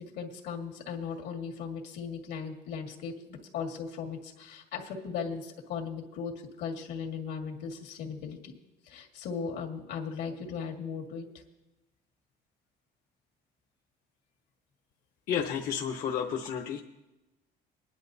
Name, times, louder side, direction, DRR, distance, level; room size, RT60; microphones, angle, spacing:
voice 1, 0.0-6.3 6.6-8.5 8.9-11.2, left 6 dB, 75° left, 1 dB, 1.9 m, -37 dB
voice 2, 15.3-16.8, left 8 dB, 55° left, 2 dB, 0.9 m, -31 dB
21.5 x 10.5 x 2.7 m, 1.0 s
cardioid pair, 135°, 17 cm